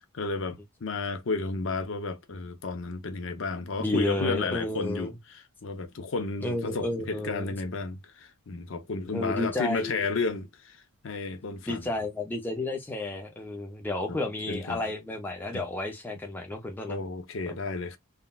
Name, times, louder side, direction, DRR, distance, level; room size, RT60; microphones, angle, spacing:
voice 1, 0.0-5.1 5.6-11.8 14.1-14.2 14.5-14.8 16.9-18.0, left 3 dB, 60° left, 0.5 m, -32 dB
voice 2, 3.8-5.1 6.4-7.5 9.1-10.0 11.7-17.0 17.5-17.6, left 2 dB, 10° left, 0.4 m, -31 dB
3.6 x 2.1 x 2.2 m
head